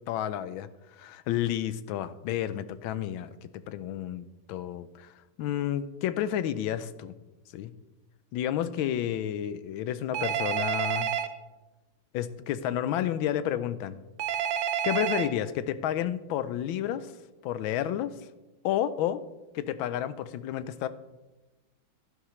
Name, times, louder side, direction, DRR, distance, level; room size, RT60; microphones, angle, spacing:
voice 1, 0.1-7.1 7.5-7.7 8.3-11.1 12.1-14.0 14.8-17.1 17.4-18.1 18.6-19.2 19.5-20.9, left 11 dB, 75° left, 14 dB, 1.3 m, -31 dB
Telephone, 10.1-11.3 14.2-15.3, right 9 dB, 70° right, 1.3 m, -29 dB
11.5 x 10.5 x 3.2 m, 1.1 s
omnidirectional pair, 2.3 m